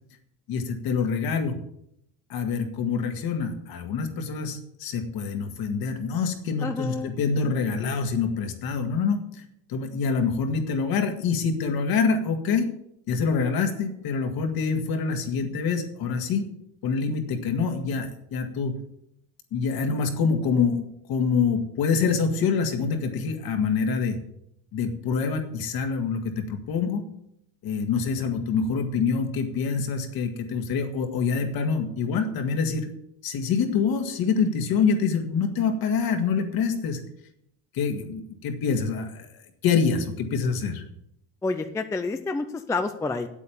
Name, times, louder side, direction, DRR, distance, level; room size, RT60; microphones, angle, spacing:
voice 1, 0.5-1.6 2.3-9.4 9.7-12.7 13.1-16.4 16.8-18.8 19.5-24.2 24.7-27.0 27.6-32.9 33.2-37.0 37.7-39.3 39.6-40.8, left 5 dB, 55° left, 5 dB, 2.1 m, -26 dB
voice 2, 6.6-7.1 41.4-43.3, left 3 dB, 5° left, 8 dB, 0.4 m, -28 dB
8.7 x 8.4 x 8.6 m, 0.74 s
cardioid pair, 155°, 44 cm